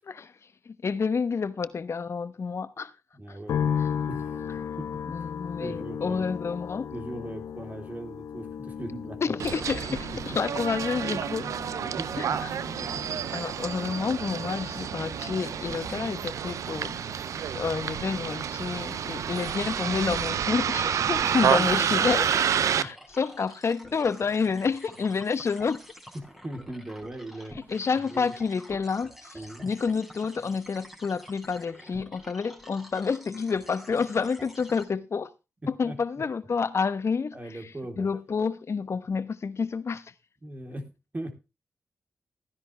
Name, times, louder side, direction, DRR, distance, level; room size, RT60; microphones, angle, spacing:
voice 1, 0.6-2.9 3.3-3.4 3.8-3.9 5.1-6.9 9.2-10.0 10.3-11.5 12.2-12.6 13.3-17.0 17.5-22.3 22.6-25.8 27.7-35.3 35.7-37.6 38.0-40.1, left 5 dB, 60° left, 1.1 m, -29 dB
voice 2, 3.1-3.7 4.1-4.3 4.8-5.2 5.6-6.2 6.9-9.3 9.7-10.4 12.0-12.4 21.6-21.7 22.8-22.9 26.1-27.6 28.1-28.3 29.3-29.7 35.8-36.0 37.3-38.1 40.4-41.3, right 1 dB, 30° right, 3.6 m, -39 dB
sound 1, 3.5-18.7 19.0-19.9, left 7 dB, 90° left, 0.7 m, -37 dB
Bus, 9.4-22.8, right 8 dB, 85° right, 0.6 m, -29 dB
sound 2, 19.3-34.8, equal, 5° right, 4.3 m, -48 dB
14.5 x 10.5 x 3.4 m
cardioid pair, 55°, 5 cm